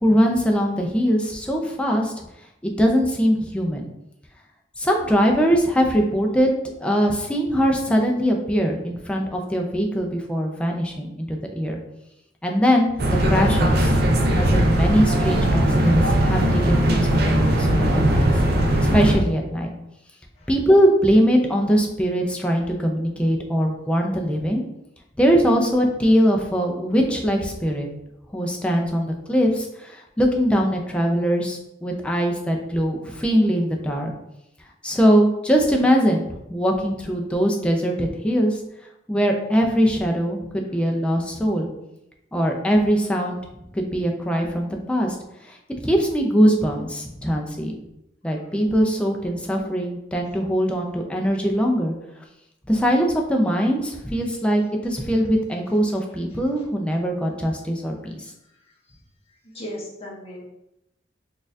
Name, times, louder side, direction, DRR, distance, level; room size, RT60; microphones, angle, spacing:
voice 1, 0.0-2.2 2.6-3.9 4.8-6.5 6.8-11.8 12.4-12.9 13.3-13.9 14.3-18.3 18.8-19.7 20.5-24.6 25.2-27.9 28.3-34.1 34.8-38.6 39.1-41.7 42.3-43.4 43.7-45.1 45.5-45.6 45.8-47.7 48.2-51.9 52.7-58.2, equal, 5° left, 1 dB, 0.4 m, -21 dB
sound 1, 13.0-19.2, right 1 dB, 60° right, 0.5 m, -19 dB
voice 2, 59.4-60.4, equal, 35° left, -4 dB, 0.9 m, -36 dB
4.1 x 2.4 x 2.6 m, 0.85 s
head